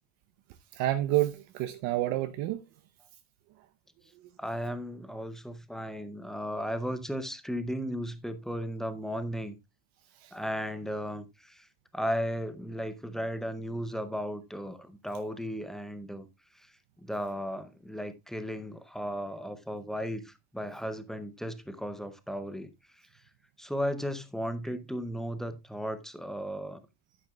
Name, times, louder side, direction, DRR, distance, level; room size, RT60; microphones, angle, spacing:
voice 1, 0.7-2.6 10.2-10.3, right 15 dB, 60° right, 0.8 m, -29 dB
voice 2, 4.4-9.6 10.3-11.7 11.9-16.3 17.0-22.7 23.6-26.8, equal, ahead, 0.5 m, -35 dB
10.5 x 9.4 x 2.3 m
cardioid pair, 150°, 50 cm